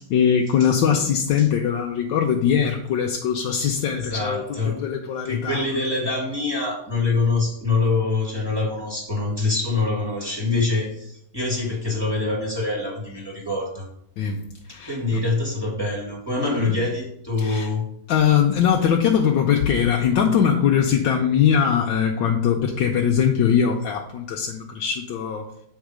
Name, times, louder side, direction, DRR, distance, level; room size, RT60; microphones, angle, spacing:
voice 1, 0.1-5.6 14.2-14.4 14.7-15.2 16.5-16.8 17.4-17.7 18.1-25.5, left 8 dB, 75° left, 1 dB, 1.3 m, -21 dB
voice 2, 3.9-4.8 5.2-13.8 14.8-17.9, left 3 dB, 10° right, -4 dB, 2.2 m, -25 dB
8.1 x 3.7 x 4.9 m, 0.71 s
omnidirectional pair, 2.3 m